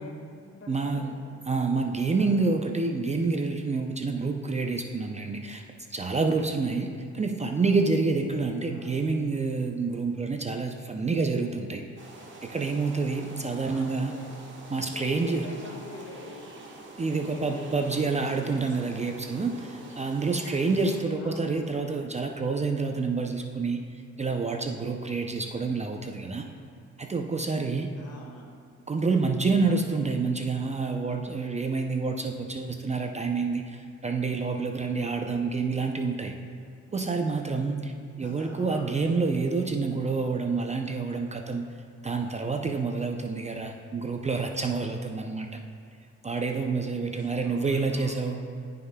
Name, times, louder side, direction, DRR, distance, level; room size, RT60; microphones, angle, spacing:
voice 1, 0.0-1.4 2.1-2.5 7.4-7.7 8.7-9.1 13.5-14.3 14.7-16.4 17.2-19.0 19.5-19.9 21.1-21.7 27.9-28.6 38.2-39.1 46.9-48.3, left 2 dB, 55° left, 0 dB, 1.7 m, -46 dB
voice 2, 0.7-1.1 1.5-5.6 5.9-6.9 7.1-11.8 12.4-14.1 14.7-15.4 17.0-23.8 24.2-26.5 27.0-27.9 28.9-36.3 36.9-37.9 38.2-41.7 42.0-45.6 46.2-48.4, right 4 dB, 25° right, 4 dB, 0.5 m, -28 dB
sound 1, 12.0-21.0, right 2 dB, 40° right, 1.4 m, -46 dB
13.0 x 5.7 x 2.2 m, 2.2 s
cardioid pair, 90°, 30 cm